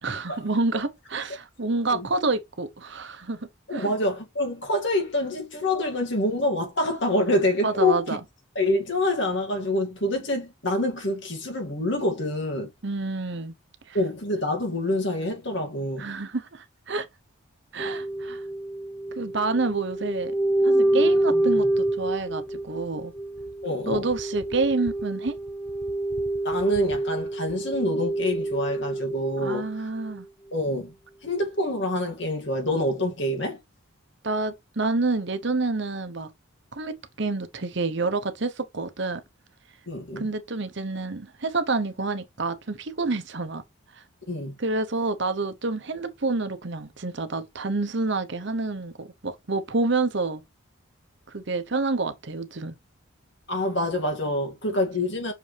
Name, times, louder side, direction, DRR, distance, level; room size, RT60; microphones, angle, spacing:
voice 1, 0.0-3.4 3.7-3.9 7.6-8.2 12.8-13.5 13.9-14.0 16.0-17.1 17.7-18.4 19.2-20.3 20.6-23.1 23.9-25.4 29.4-30.3 34.2-36.3 36.7-39.2 40.2-43.6 44.6-50.4 51.3-52.8, right 3 dB, 55° right, 0.9 m, -28 dB
voice 2, 3.7-8.2 8.6-12.7 13.9-16.1 23.6-24.1 26.4-29.7 30.5-30.9 31.2-33.6 39.9-40.3 44.3-44.6 53.5-55.3, left 1 dB, 55° left, 2.3 m, -26 dB
sound 1, 17.8-29.7 30.1-30.2, right 1 dB, 5° left, 0.7 m, -27 dB
6.2 x 5.3 x 3.4 m
head